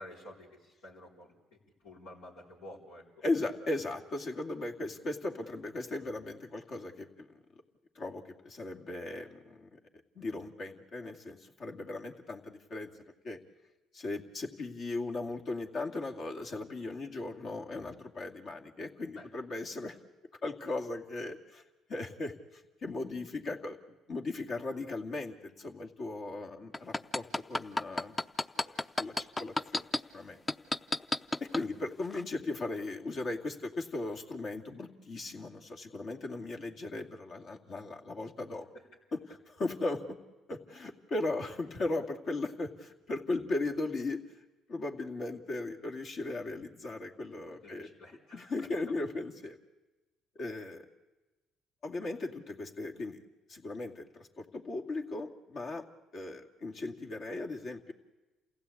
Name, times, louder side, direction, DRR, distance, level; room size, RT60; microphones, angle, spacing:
voice 1, 0.0-1.3 1.8-3.2 19.1-19.3 31.5-31.6 38.7-38.9 47.5-48.9 50.6-50.7, left 1 dB, 85° left, -6 dB, 4.7 m, -51 dB
voice 2, 3.2-7.4 7.9-9.8 10.2-12.9 13.2-13.4 13.9-20.0 20.4-21.6 21.9-28.2 28.7-29.8 30.1-30.4 31.4-38.7 39.1-40.2 40.5-44.2 44.7-47.9 48.3-49.6 50.4-50.8 51.8-53.2 53.5-55.9 56.1-57.9, left 2 dB, 60° left, 1 dB, 2.4 m, -37 dB
sound 1, 26.7-30.0 30.5-31.6 32.1-32.2, left 2 dB, 20° left, 0.7 m, -30 dB
28.5 x 16.0 x 8.5 m, 1.1 s
supercardioid pair, 70°, 0 cm